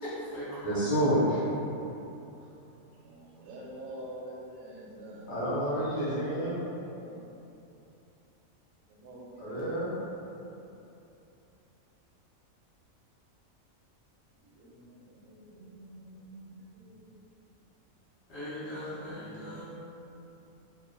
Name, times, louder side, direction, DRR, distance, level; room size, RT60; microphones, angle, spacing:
voice 1, 0.0-0.6 18.3-19.6, equal, 55° left, -11 dB, 1.1 m, -39 dB
voice 2, 0.6-1.4 5.3-6.6 9.4-9.9, equal, 80° left, -10 dB, 1.3 m, -28 dB
voice 3, 3.0-5.6 6.9-7.2 8.9-9.9 14.4-17.1 18.6-19.6, right 1 dB, 85° right, -4 dB, 1.0 m, -47 dB
3.0 x 2.1 x 3.7 m, 2.8 s
omnidirectional pair, 1.4 m